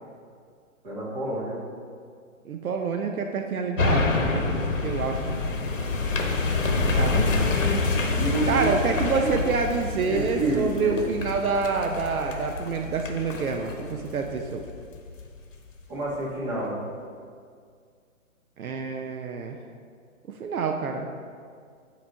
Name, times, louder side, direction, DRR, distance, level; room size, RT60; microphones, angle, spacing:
voice 1, 0.8-1.7 7.1-7.8 8.1-9.3 10.0-11.1 15.9-16.8, right 2 dB, 30° right, -6 dB, 1.7 m, -29 dB
voice 2, 2.4-5.4 7.0-7.3 8.5-14.6 18.6-19.6 20.3-21.1, right 5 dB, 80° right, 3 dB, 0.7 m, -27 dB
sound 1, 3.8-15.2 15.7-15.8, left 3 dB, 60° left, 1.0 m, -27 dB
8.6 x 3.0 x 4.5 m, 2.1 s
hypercardioid pair, 150°, 42 cm